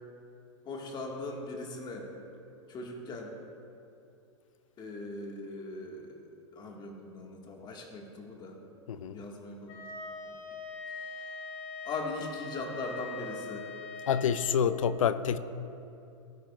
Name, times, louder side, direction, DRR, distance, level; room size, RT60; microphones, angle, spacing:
voice 1, 0.6-2.1 2.7-3.3 4.8-6.2 6.5-8.6 9.1-9.8 10.2-10.4 11.1-11.3 11.8-13.7, left 2 dB, 25° left, 1 dB, 1.7 m, -40 dB
Wind instrument woodwind instrument, 9.7-14.5, left 4 dB, 50° left, 2.3 m, -42 dB
voice 2, 14.1-15.4, left 8 dB, 80° left, 14 dB, 0.6 m, -27 dB
18.0 x 8.9 x 2.4 m, 2.7 s
hypercardioid pair, 125°, 17 cm